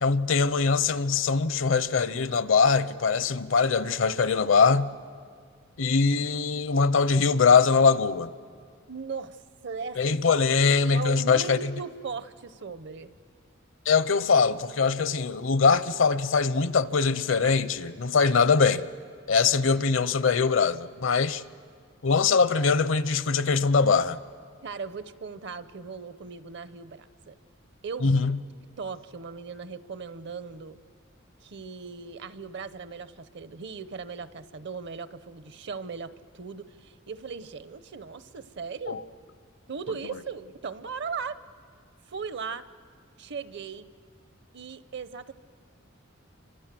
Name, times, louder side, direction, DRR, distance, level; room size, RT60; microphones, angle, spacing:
voice 1, 0.0-4.9 5.8-8.3 10.0-11.7 13.9-18.8 19.3-21.4 22.0-24.2 28.0-28.4 38.9-39.0, left 5 dB, 70° left, 0.7 m, -22 dB
voice 2, 8.9-10.2 10.8-13.1 24.6-27.3 27.8-28.2 28.8-30.8 31.4-39.0 39.7-41.4 42.1-42.6 43.2-43.9 44.5-45.3, right 5 dB, 60° right, 0.8 m, -38 dB
28.5 x 25.5 x 7.6 m
head